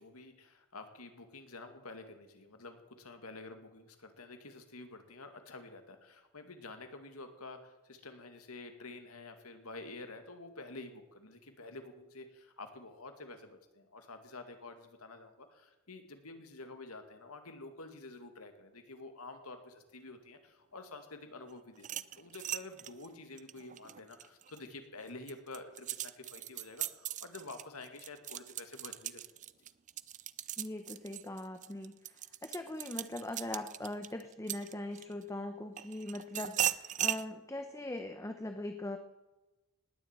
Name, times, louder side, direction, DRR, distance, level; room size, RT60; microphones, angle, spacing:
voice 1, 0.0-29.2, left 3 dB, 75° left, 7 dB, 2.2 m, -49 dB
sound 1, 21.8-24.6 25.1-35.2 35.8-37.3, right 11 dB, 35° right, 0.5 m, -39 dB
voice 2, 30.6-39.0, left 1 dB, 15° left, 6 dB, 0.9 m, -41 dB
19.0 x 7.5 x 9.0 m, 1.1 s
head